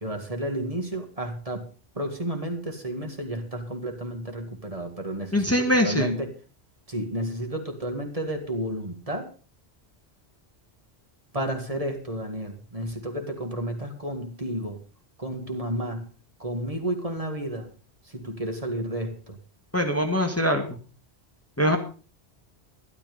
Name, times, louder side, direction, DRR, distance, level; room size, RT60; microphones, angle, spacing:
voice 1, 0.0-1.7 2.0-6.3 6.9-9.3 11.3-14.8 15.2-16.1 16.4-17.7 18.1-19.4, right 1 dB, 35° right, 4 dB, 2.2 m, -31 dB
voice 2, 5.3-6.1 19.7-20.8 21.6-21.8, equal, 15° left, 4 dB, 1.8 m, -23 dB
12.5 x 12.0 x 5.3 m, 0.37 s
omnidirectional pair, 1.1 m